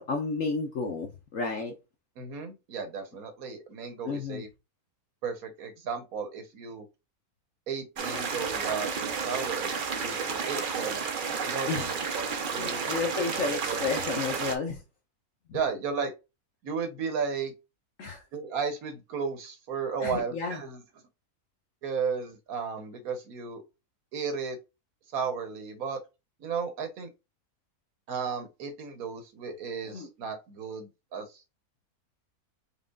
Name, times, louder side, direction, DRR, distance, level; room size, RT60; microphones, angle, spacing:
voice 1, 0.0-1.7 4.0-4.4 11.7-11.9 12.5-14.8 15.5-15.6 18.0-18.2 20.0-20.6 29.9-30.1, left 4 dB, 60° left, 1.2 m, -32 dB
voice 2, 2.2-4.5 5.2-6.9 7.7-11.0 11.4-13.1 13.4-13.8 15.5-16.1 16.6-17.5 18.3-20.8 21.8-23.6 24.1-24.6 25.1-26.0 26.4-27.1 28.1-31.4, right 5 dB, 70° right, 1.4 m, -34 dB
sound 1, 8.0-14.5, right 5 dB, 45° right, 0.7 m, -31 dB
5.3 x 3.7 x 2.3 m
omnidirectional pair, 1.6 m